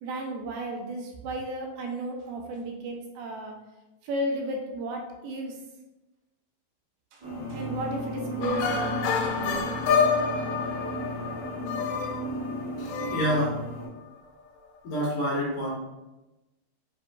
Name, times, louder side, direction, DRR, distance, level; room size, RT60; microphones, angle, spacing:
voice 1, 0.0-3.5 4.0-5.5 7.1-7.2 7.5-9.8, right 1 dB, 80° right, 1 dB, 2.3 m, -34 dB
sound 1, 7.2-13.9, equal, 60° right, 1.2 m, -35 dB
sound 2, 8.4-14.0, left 5 dB, 85° left, 2.6 m, -28 dB
voice 2, 12.8-13.5 14.8-15.7, equal, 70° left, -5 dB, 2.1 m, -27 dB
7.4 x 2.8 x 2.3 m, 1.0 s
omnidirectional pair, 4.4 m